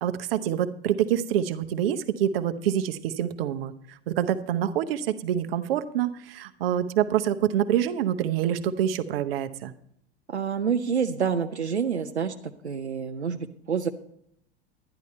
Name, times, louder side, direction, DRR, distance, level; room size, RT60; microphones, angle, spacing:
voice 1, 0.0-3.7 4.1-9.7, right 10 dB, 60° right, 11 dB, 0.9 m, -26 dB
voice 2, 10.3-13.9, right 6 dB, 85° right, 6 dB, 0.7 m, -28 dB
12.0 x 10.5 x 4.2 m, 0.71 s
figure-of-eight pair, 80°, 33 cm